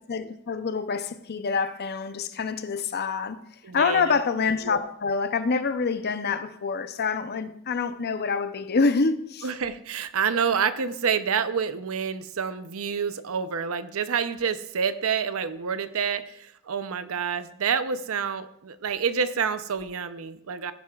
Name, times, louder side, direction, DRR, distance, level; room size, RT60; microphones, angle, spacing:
voice 1, 0.1-3.4 3.7-9.5, left 4 dB, 45° left, 0.6 m, -26 dB
voice 2, 3.6-4.1 9.4-20.7, right 6 dB, 65° right, 0.6 m, -28 dB
15.5 x 10.0 x 2.4 m
head